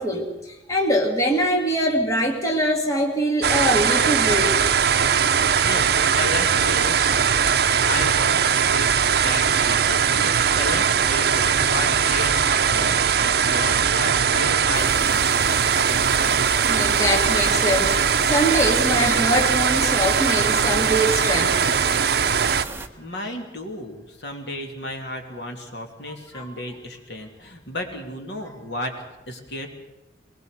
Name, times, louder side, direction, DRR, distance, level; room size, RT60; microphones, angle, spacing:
voice 1, 0.0-4.6 16.2-18.0 18.3-21.6 26.1-26.5, equal, 20° left, 0 dB, 2.3 m, -23 dB
sound 1, 3.4-22.6, right 7 dB, 60° right, 0.6 m, -20 dB
voice 2, 5.6-7.3 7.8-15.2 23.0-28.9 29.3-29.7, left 1 dB, 65° left, 3 dB, 2.9 m, -33 dB
sound 2, 14.7-22.9, right 2 dB, 15° right, 1.2 m, -34 dB
21.5 x 21.0 x 6.7 m, 1.0 s
head